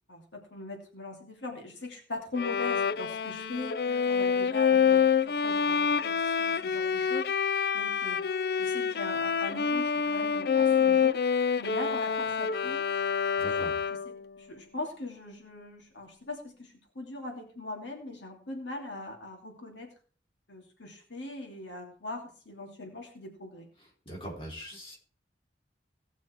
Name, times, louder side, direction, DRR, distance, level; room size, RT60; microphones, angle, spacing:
voice 1, 0.1-7.3 7.7-8.2 8.6-11.2 11.6-12.8 13.4-13.6 14.0-19.9 20.5-23.7, left 2 dB, 90° left, 2 dB, 2.9 m, -41 dB
Bowed string instrument, 2.4-14.2, left 6 dB, 55° left, 0.4 m, -27 dB
voice 2, 13.4-13.7 24.1-25.0, equal, 30° left, -3 dB, 3.9 m, -41 dB
18.0 x 6.2 x 4.6 m, 0.41 s
head